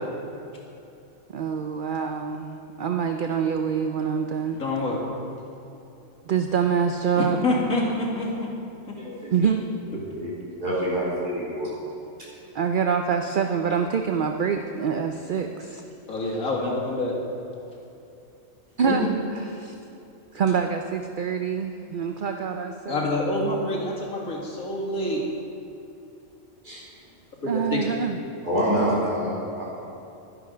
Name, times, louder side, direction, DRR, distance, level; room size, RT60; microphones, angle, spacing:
voice 1, 1.3-4.6 6.3-7.4 9.3-9.7 12.5-15.8 18.8-19.1 19.3-19.7 20.3-23.1 27.5-28.2, right 6 dB, 55° right, 5 dB, 0.6 m, -25 dB
voice 2, 4.5-5.0 7.2-8.5 16.1-17.1 18.9-19.0 22.9-25.2 27.4-27.8, left 2 dB, 85° left, -3 dB, 2.6 m, -26 dB
voice 3, 9.0-9.4 10.1-10.3 10.6-11.7 26.6-26.8 28.4-29.7, equal, 35° right, -8 dB, 3.9 m, -26 dB
12.0 x 11.0 x 5.1 m, 2.7 s
omnidirectional pair, 1.4 m